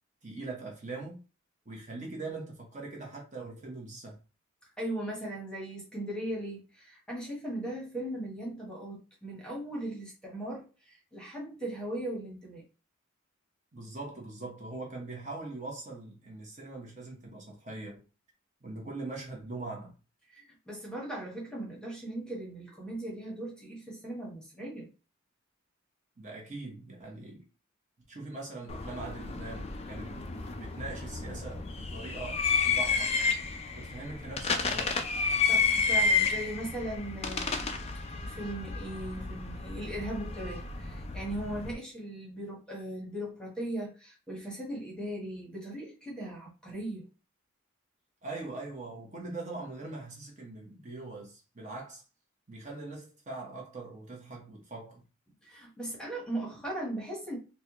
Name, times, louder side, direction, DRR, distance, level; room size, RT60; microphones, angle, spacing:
voice 1, 0.2-1.2 1.6-4.2 13.7-18.0 18.6-19.9 26.2-27.4 28.1-33.1 33.7-35.0 48.2-52.0 52.5-55.0, right 3 dB, 35° right, 1.0 m, -42 dB
voice 2, 4.8-12.6 20.3-24.9 35.4-37.8 38.2-47.1 55.4-57.4, right 1 dB, 5° left, 1.0 m, -38 dB
sound 1, 28.7-41.7, left 5 dB, 30° left, 0.3 m, -31 dB
4.2 x 2.2 x 2.9 m
head